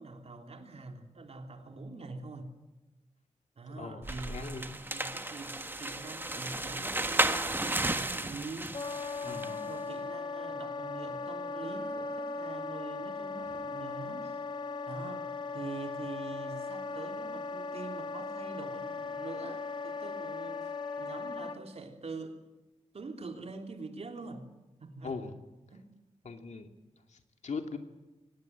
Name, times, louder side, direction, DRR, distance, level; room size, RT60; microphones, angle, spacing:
voice 1, 0.0-2.5 3.6-8.8 9.2-14.4 14.9-22.4 22.9-24.5 24.8-25.3 25.7-25.8 26.2-26.3, right 3 dB, 60° right, 3.1 m, -44 dB
voice 2, 3.7-4.6 9.2-9.5 25.0-25.3 26.2-26.7 27.1-27.8, left 4 dB, 70° left, 2.5 m, -40 dB
sound 1, 4.0-9.6, right 2 dB, 15° right, 1.4 m, -33 dB
Wind instrument woodwind instrument, 8.7-21.6, left 4 dB, 40° left, 2.1 m, -38 dB
23.5 x 19.0 x 9.4 m
wide cardioid pair, 115°, 12 cm